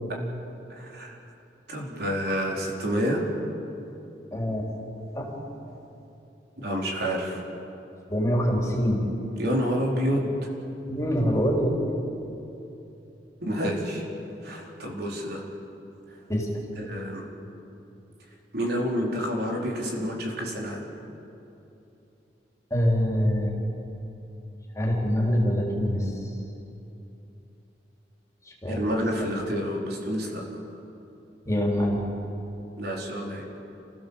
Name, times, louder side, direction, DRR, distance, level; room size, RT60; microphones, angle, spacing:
voice 1, 0.8-1.2 1.7-3.2 6.6-7.4 9.4-10.5 13.4-14.1 14.4-15.4 16.8-17.3 18.5-20.9 28.7-30.4 32.8-33.4, equal, 65° right, -1 dB, 4.3 m, -28 dB
voice 2, 4.3-4.7 5.1-5.3 8.1-9.1 10.9-11.8 16.3-16.5 22.7-23.6 24.7-26.1 28.6-28.8 31.5-32.0, equal, 20° left, -2 dB, 4.0 m, -24 dB
29.5 x 16.0 x 7.3 m, 2.8 s
head